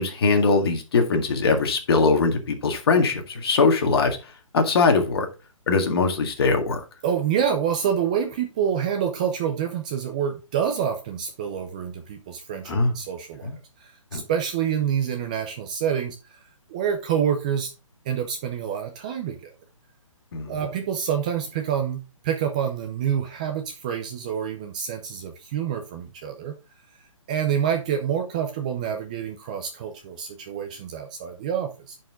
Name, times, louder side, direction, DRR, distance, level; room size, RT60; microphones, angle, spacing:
voice 1, 0.0-4.2 4.5-5.3 5.7-6.8 12.7-12.9 13.4-13.6 14.1-14.2 20.3-20.5, left 4 dB, 45° left, 1.9 m, -21 dB
voice 2, 7.0-16.4 16.7-17.7 18.1-19.5 20.5-26.5 27.3-32.0, right 8 dB, 15° right, 0.5 m, -27 dB
10.5 x 4.8 x 3.7 m
hypercardioid pair, 165°, 17 cm